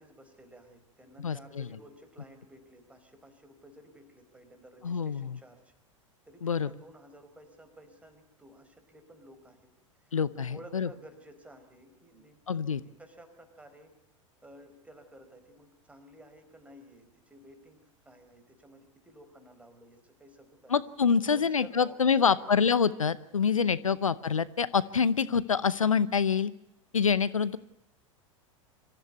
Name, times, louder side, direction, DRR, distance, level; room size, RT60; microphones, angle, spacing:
voice 1, 0.0-5.7 6.3-9.7 10.0-13.9 14.4-20.8 21.3-22.5 23.7-24.0, right 1 dB, 10° right, 6 dB, 4.7 m, -54 dB
voice 2, 1.2-1.6 4.8-5.4 6.4-6.7 10.1-10.9 12.5-12.8 20.7-26.5 26.9-27.6, left 6 dB, 85° left, 17 dB, 0.8 m, -26 dB
25.0 x 14.5 x 9.5 m, 0.83 s
figure-of-eight pair, 90°, 17 cm